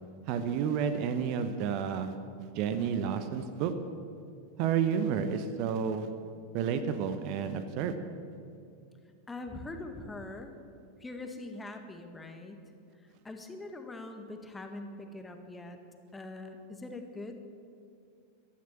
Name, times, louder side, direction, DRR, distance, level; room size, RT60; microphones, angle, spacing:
voice 1, 0.3-3.7 4.6-6.1 6.5-7.9, right 7 dB, 45° right, 10 dB, 1.0 m, -31 dB
voice 2, 9.3-10.5 11.0-12.6 13.2-15.8 16.1-17.4, left 2 dB, 10° left, 5 dB, 1.7 m, -42 dB
15.0 x 13.0 x 7.4 m, 2.4 s
figure-of-eight pair, 90°, 0 cm